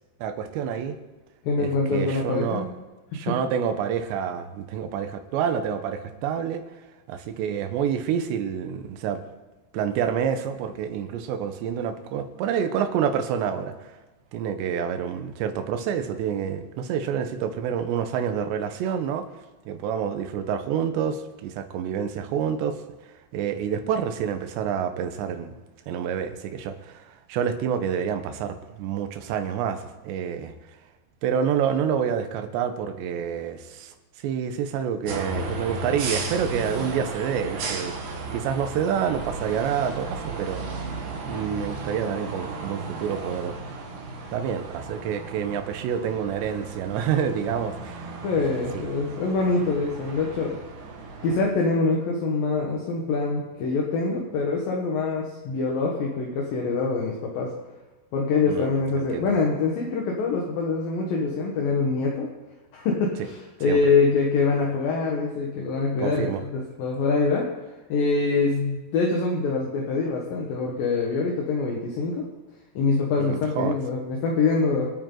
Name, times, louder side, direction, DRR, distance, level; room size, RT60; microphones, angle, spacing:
voice 1, 0.2-1.0 1.6-2.7 3.1-6.6 7.1-9.2 9.7-14.0 14.3-19.3 19.7-22.8 23.0-25.5 25.9-30.5 31.2-38.0 38.3-40.8 41.3-43.6 44.3-48.4 48.7-48.8 58.5-59.3 63.7-63.8 66.0-66.4 73.2-73.8, right 8 dB, 90° right, 8 dB, 3.3 m, -28 dB
voice 2, 1.4-2.6 3.1-3.3 48.2-50.6 51.2-57.5 58.1-62.3 62.7-67.5 67.9-72.2 72.7-74.9, left 4 dB, 65° left, -1 dB, 2.9 m, -24 dB
sound 1, 35.1-51.4, right 3 dB, 55° right, 2.7 m, -35 dB
26.0 x 9.1 x 3.9 m, 1.2 s
omnidirectional pair, 4.9 m